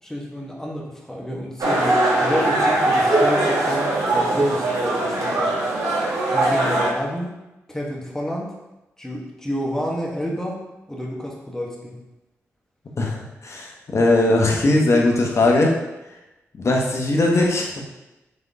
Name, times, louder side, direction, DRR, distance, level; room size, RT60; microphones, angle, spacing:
voice 1, 0.0-5.5 6.3-7.3 7.7-8.5 9.0-10.6 10.9-12.0, equal, 10° left, -2 dB, 1.3 m, -29 dB
sound 1, 1.6-6.9, right 2 dB, 70° right, 1.4 m, -20 dB
voice 2, 13.0-15.7 16.5-17.7, left 2 dB, 55° left, 0 dB, 1.0 m, -19 dB
4.0 x 3.5 x 3.5 m, 1.0 s
supercardioid pair, 45°, 6 cm